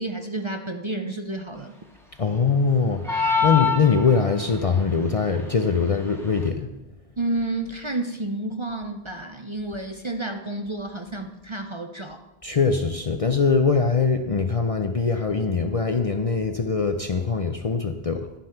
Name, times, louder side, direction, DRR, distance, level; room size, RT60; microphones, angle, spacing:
voice 1, 0.0-1.8 3.4-3.5 7.2-12.2, right 2 dB, 35° right, 5 dB, 0.6 m, -30 dB
voice 2, 2.2-6.7 12.4-18.3, left 5 dB, 40° left, 6 dB, 0.5 m, -22 dB
sound 1, 3.0-4.5, left 6 dB, ahead, 1.6 m, -23 dB
11.0 x 7.6 x 5.8 m, 1.0 s
omnidirectional pair, 1.1 m